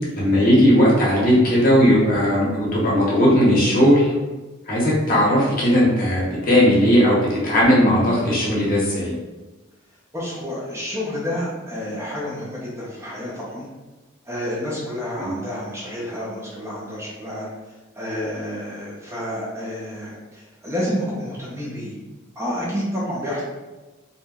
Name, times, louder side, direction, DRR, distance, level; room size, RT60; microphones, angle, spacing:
voice 1, 0.1-4.1 4.7-9.1 15.2-15.3, equal, 40° left, -5 dB, 0.8 m, -17 dB
voice 2, 10.1-13.7 14.3-17.5 18.0-22.0 22.4-23.4, equal, 15° right, -6 dB, 0.5 m, -29 dB
2.8 x 2.5 x 2.3 m, 1.2 s
head